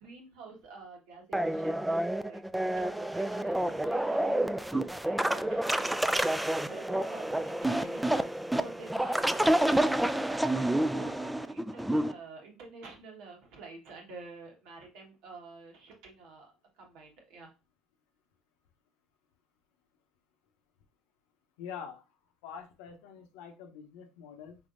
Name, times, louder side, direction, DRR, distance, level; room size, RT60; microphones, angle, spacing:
voice 1, 0.0-9.5 10.5-17.5, right 3 dB, 70° right, 0 dB, 1.4 m, -49 dB
sound 1, 1.3-12.1, right 1 dB, 5° right, 0.3 m, -29 dB
voice 2, 21.6-22.0 22.4-24.6, left 7 dB, 80° left, 5 dB, 0.8 m, -45 dB
4.5 x 3.5 x 2.5 m, 0.29 s
hypercardioid pair, 75°, 0 cm